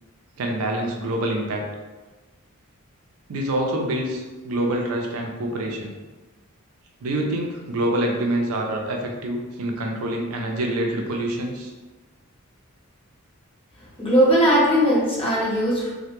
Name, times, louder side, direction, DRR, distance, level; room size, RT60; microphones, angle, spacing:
voice 1, 0.4-1.7 3.3-5.9 7.0-11.7, right 1 dB, 75° right, 1 dB, 0.4 m, -26 dB
voice 2, 14.0-15.9, equal, 25° left, -7 dB, 0.7 m, -19 dB
2.1 x 2.1 x 2.9 m, 1.2 s
head